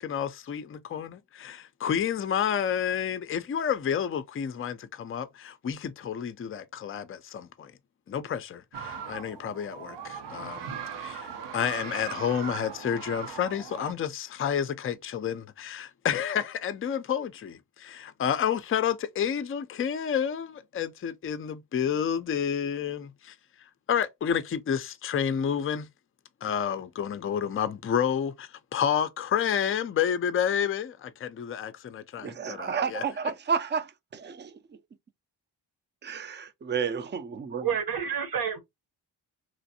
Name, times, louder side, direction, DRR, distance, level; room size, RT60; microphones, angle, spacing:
voice 1, 0.0-7.7 8.1-23.3 23.9-25.9 26.4-33.0, left 8 dB, 35° left, 0.4 m, -30 dB
sound 1, 8.7-13.9, right 7 dB, 80° right, 0.8 m, -39 dB
voice 2, 32.2-34.8 36.0-37.7, right 6 dB, 25° right, 0.5 m, -31 dB
voice 3, 37.6-38.6, right 7 dB, 55° right, 1.0 m, -29 dB
3.1 x 2.5 x 2.7 m
cardioid pair, 65°, 41 cm